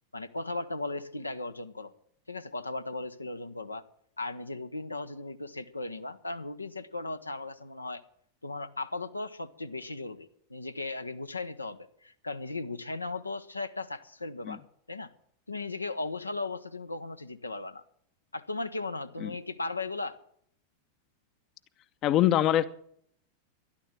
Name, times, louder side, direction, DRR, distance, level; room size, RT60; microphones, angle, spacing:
voice 1, 0.1-1.9 2.3-3.8 4.2-8.0 8.4-14.6 14.9-15.1 15.5-17.8 18.3-20.2, left 2 dB, 80° left, 9 dB, 1.0 m, -37 dB
voice 2, 22.0-22.6, left 12 dB, 35° left, 14 dB, 0.8 m, -23 dB
13.0 x 11.5 x 7.5 m, 0.66 s
figure-of-eight pair, 90°, 0 cm